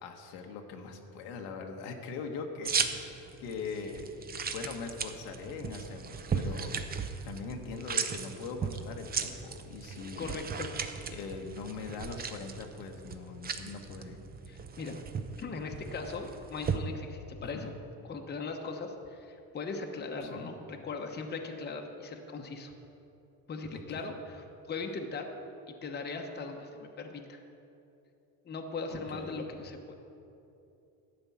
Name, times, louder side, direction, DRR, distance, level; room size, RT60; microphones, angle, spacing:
voice 1, 0.0-4.1 4.5-10.4 11.1-14.2 17.4-17.7 20.2-20.5 23.9-24.1 28.9-29.5, left 4 dB, 90° left, 3 dB, 1.3 m, -41 dB
sound 1, 2.7-16.8, right 6 dB, 25° right, 0.6 m, -37 dB
voice 2, 10.2-10.8 14.5-15.0 15.4-17.7 18.0-22.7 23.5-25.3 25.7-27.4 28.4-29.9, left 4 dB, 25° left, 3 dB, 0.9 m, -39 dB
11.5 x 5.3 x 8.4 m, 2.9 s
cardioid pair, 125°, 39 cm